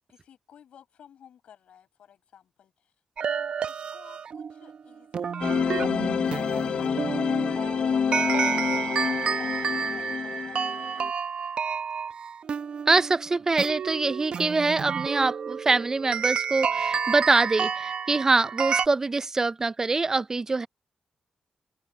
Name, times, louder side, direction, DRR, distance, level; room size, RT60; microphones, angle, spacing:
voice 1, 0.1-2.9 3.2-6.2 6.5-8.8 9.2-10.6, left 9 dB, 85° left, 6.7 m, -54 dB
sound 1, 3.2-18.9, right 6 dB, 60° right, 0.8 m, -30 dB
sound 2, 5.4-11.1, left 6 dB, 60° left, 0.7 m, -28 dB
voice 2, 12.9-20.7, right 3 dB, 25° right, 0.4 m, -24 dB
open air
cardioid pair, 105°, 2 cm